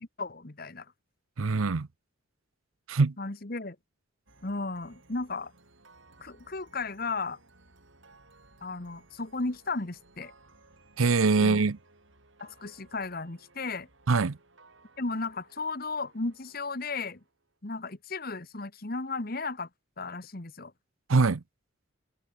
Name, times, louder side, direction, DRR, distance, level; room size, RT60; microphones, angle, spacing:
voice 1, 0.2-0.9 3.2-3.8 4.4-5.5 6.2-7.4 8.6-10.3 11.4-11.6 12.4-13.9 15.0-17.2 17.6-19.7 20.0-20.7, left 3 dB, 45° left, 1.5 m, -35 dB
voice 2, 1.4-1.9 2.9-3.1 11.0-11.8 14.1-14.4 21.1-21.4, right 4 dB, 90° right, 0.7 m, -23 dB
sound 1, 4.3-17.5, right 2 dB, 70° right, 4.7 m, -60 dB
head